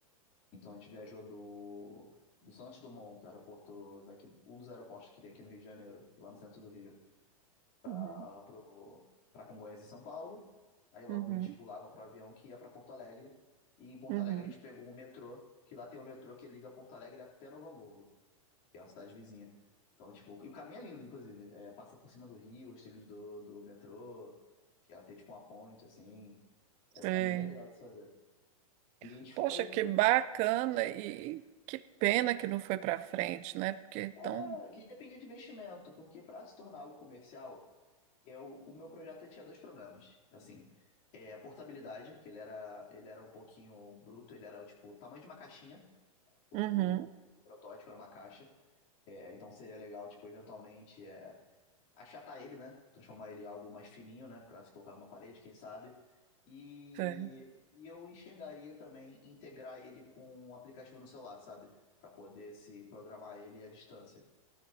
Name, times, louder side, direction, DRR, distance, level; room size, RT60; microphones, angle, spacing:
voice 1, 0.5-2.2 2.4-7.0 7.8-9.1 9.3-10.5 10.9-13.4 13.8-18.1 18.7-19.6 20.0-24.4 24.9-26.4 26.9-28.2 29.0-29.9 34.2-37.7 38.2-40.7 41.1-46.0 46.5-47.1 47.5-48.5 49.1-51.5 51.9-56.0 56.5-64.3, left 3 dB, 45° left, -4 dB, 3.4 m, -50 dB
voice 2, 11.1-11.5 14.1-14.5 27.0-27.5 29.4-31.4 31.7-34.5 46.5-47.1 57.0-57.3, right 16 dB, 40° right, 15 dB, 0.5 m, -32 dB
19.0 x 12.5 x 2.8 m, 1.3 s
hypercardioid pair, 125°, 18 cm